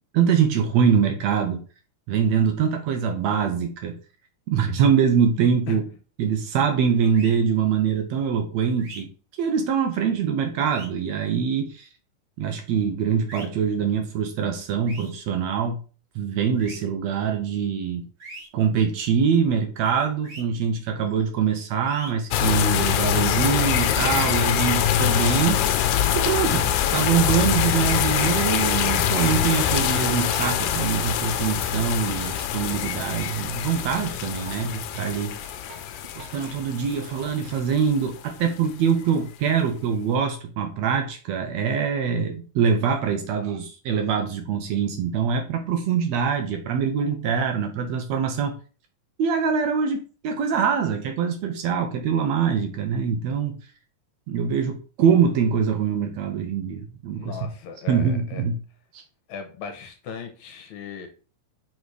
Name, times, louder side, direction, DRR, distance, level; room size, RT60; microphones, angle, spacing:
voice 1, 0.1-1.6 2.1-4.0 4.5-5.8 6.2-9.1 9.4-11.9 12.4-15.8 16.1-18.1 18.5-25.7 26.1-35.4 36.2-48.6 49.2-53.6 54.3-57.4 57.9-58.6 58.9-59.0, right 7 dB, 70° right, 4 dB, 1.8 m, -24 dB
sound 1, 7.1-7.3 8.8-9.0 10.6-10.9 13.3-13.4 14.8-15.1 16.5-16.7 18.2-18.5 20.2-20.4 21.8-22.1, right 2 dB, 45° right, 1.7 m, -41 dB
sound 2, 22.3-38.2, left 9 dB, 85° left, 2.2 m, -24 dB
sound 3, 29.7-30.6 30.9-36.6, right 6 dB, 85° right, 2.2 m, -41 dB
voice 2, 57.1-58.4 59.3-61.1, left 6 dB, 70° left, 6 dB, 2.2 m, -37 dB
5.3 x 4.2 x 4.7 m, 0.36 s
omnidirectional pair, 3.6 m